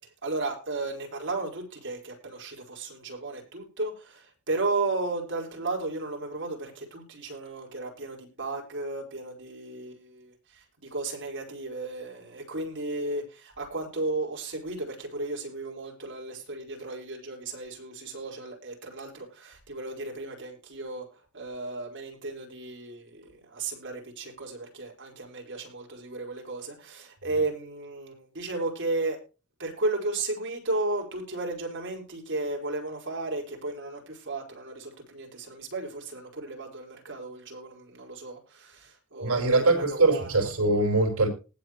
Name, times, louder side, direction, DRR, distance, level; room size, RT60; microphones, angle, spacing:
voice 1, 0.2-29.2 29.6-40.5, right 2 dB, 55° right, 5.0 m, -34 dB
voice 2, 39.2-41.3, right 2 dB, 75° right, 5.1 m, -22 dB
19.0 x 7.5 x 3.1 m
head